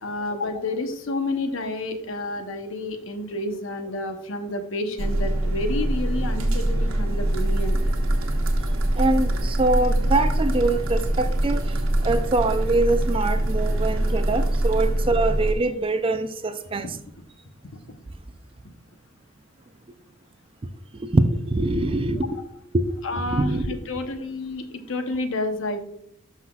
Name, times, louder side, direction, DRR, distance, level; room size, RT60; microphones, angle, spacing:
voice 1, 0.0-7.8 22.4-22.5 23.0-25.8, left 2 dB, 60° left, 0.9 m, -30 dB
sound 1, 5.0-15.5, right 1 dB, 70° right, 1.2 m, -23 dB
voice 2, 9.0-17.0 21.0-22.4 22.7-23.8, right 2 dB, 25° right, 0.4 m, -24 dB
12.0 x 5.7 x 2.3 m
head